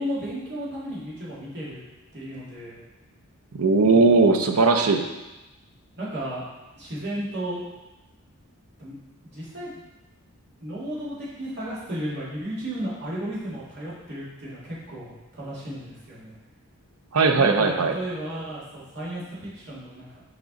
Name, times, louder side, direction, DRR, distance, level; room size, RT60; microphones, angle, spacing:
voice 1, 0.0-1.8 2.1-2.8 6.0-6.4 6.8-7.6 8.8-8.9 9.2-9.8 10.6-16.4 17.3-20.2, right 1 dB, 50° right, -8 dB, 2.4 m, -34 dB
voice 2, 3.5-5.0 17.1-17.9, right 3 dB, 75° right, 5 dB, 0.6 m, -18 dB
5.9 x 5.1 x 4.0 m, 1.1 s
head